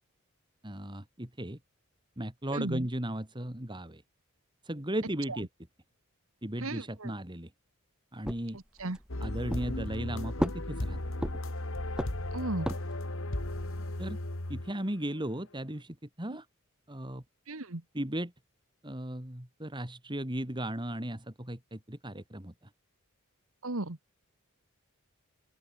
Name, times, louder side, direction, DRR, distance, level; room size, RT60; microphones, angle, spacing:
voice 1, 0.6-1.6 2.2-4.0 4.6-5.5 6.4-7.5 8.1-8.6 9.2-11.0 14.0-14.2 14.5-16.5 16.9-17.2 17.9-18.3 18.8-22.5, right 1 dB, 20° right, 2.7 m, -36 dB
voice 2, 2.5-2.9 6.6-7.1 8.8-9.0 12.3-12.7 16.3-16.4 17.5-17.8 23.6-24.0, right 2 dB, 65° right, 1.7 m, -35 dB
sound 1, 8.2-9.1 9.5-10.1 10.4-11.6 12.0-13.1, equal, 5° right, 0.8 m, -35 dB
sound 2, 9.1-15.2, left 1 dB, 65° left, 2.3 m, -36 dB
open air
head